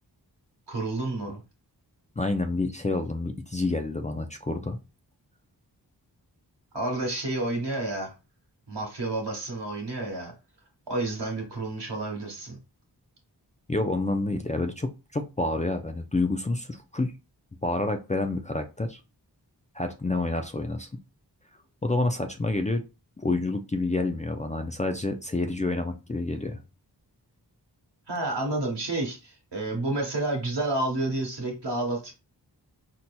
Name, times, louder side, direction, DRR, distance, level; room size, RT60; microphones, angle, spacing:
voice 1, 0.7-1.4 6.7-8.1 8.7-10.3 10.9-12.6 28.1-32.1, right 2 dB, 75° right, 1.4 m, -30 dB
voice 2, 2.2-4.8 13.7-17.1 17.6-19.0 19.7-20.9 21.8-22.8 23.2-26.6, left 2 dB, 20° left, 0.4 m, -28 dB
4.2 x 2.7 x 2.2 m
cardioid pair, 40°, 42 cm